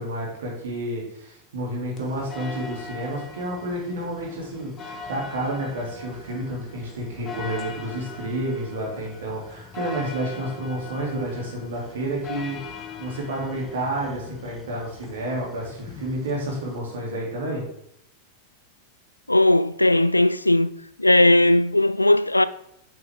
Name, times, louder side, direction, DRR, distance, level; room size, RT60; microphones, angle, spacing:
voice 1, 0.0-17.6, right 1 dB, 60° right, 3.0 m, -30 dB
sound 1, 2.0-16.8, left 4 dB, 25° left, 1.2 m, -41 dB
voice 2, 19.3-20.7 21.0-22.4, left 1 dB, 85° left, 0.4 m, -17 dB
8.6 x 7.5 x 3.7 m
figure-of-eight pair, 90°, 0 cm